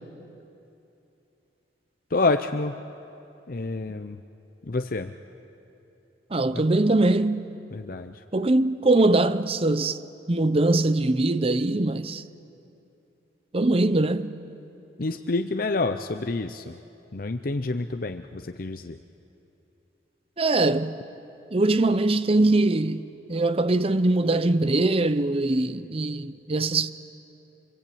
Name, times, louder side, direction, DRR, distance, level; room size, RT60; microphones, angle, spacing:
voice 1, 2.1-2.8 3.5-4.2 4.7-5.1 6.5-6.6 7.7-8.1 15.0-16.8 17.1-19.0, left 3 dB, 50° left, 0.6 m, -28 dB
voice 2, 6.3-7.5 8.3-10.0 10.3-12.2 13.5-14.3 20.4-21.0 21.5-26.9, right 2 dB, 30° right, 0.7 m, -22 dB
26.0 x 23.5 x 8.6 m
head